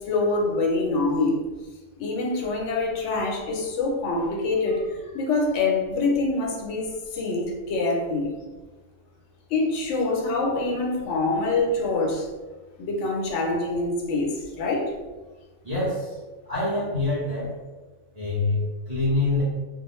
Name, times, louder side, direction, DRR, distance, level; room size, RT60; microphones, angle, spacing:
voice 1, 0.0-1.4 2.0-8.3 9.5-12.3 12.8-14.9, left 3 dB, 80° left, 0 dB, 0.9 m, -25 dB
voice 2, 15.6-16.2 16.4-17.5 18.1-19.4, left 2 dB, 35° right, -11 dB, 0.8 m, -25 dB
2.4 x 2.1 x 2.9 m, 1.2 s
omnidirectional pair, 1.3 m